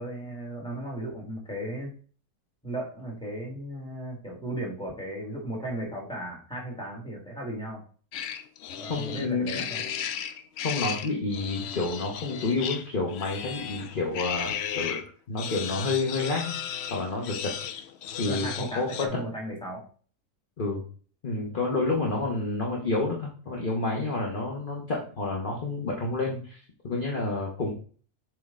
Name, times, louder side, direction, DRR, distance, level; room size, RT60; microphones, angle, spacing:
voice 1, 0.0-1.9 2.6-7.8 8.7-9.8 18.2-19.8, right 1 dB, 5° left, -3 dB, 1.8 m, -36 dB
sound 1, 8.1-15.0 15.4-19.1, left 9 dB, 80° left, 0.5 m, -35 dB
voice 2, 8.9-9.6 10.6-15.0 15.3-16.5 16.9-17.5 18.2-19.1 20.6-20.8 21.2-27.7, left 3 dB, 35° left, -1 dB, 1.1 m, -29 dB
7.6 x 3.3 x 3.7 m, 0.42 s
omnidirectional pair, 1.7 m